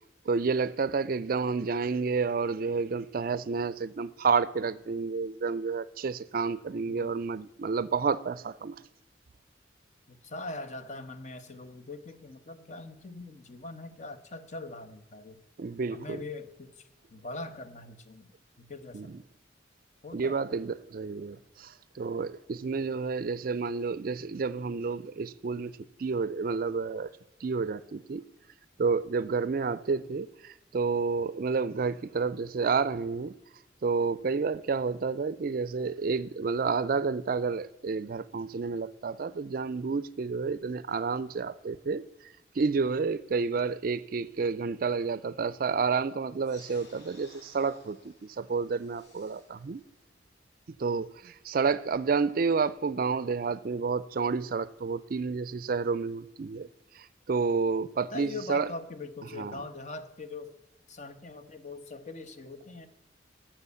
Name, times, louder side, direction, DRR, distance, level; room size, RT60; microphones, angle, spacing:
voice 1, 0.3-8.8 15.6-16.2 18.9-19.1 20.1-25.7 26.0-27.1 27.4-28.2 28.8-33.4 33.8-42.0 42.6-49.8 50.8-56.7 57.0-58.7 59.4-59.6, right 5 dB, 50° right, 0.4 m, -30 dB
voice 2, 6.9-7.2 10.1-15.4 15.9-18.3 18.6-19.1 20.0-20.4 58.1-60.6 60.9-62.9, left 3 dB, 40° left, 1.0 m, -42 dB
sound 1, 46.4-51.4, left 2 dB, 60° left, 4.4 m, -58 dB
12.5 x 7.2 x 8.3 m
head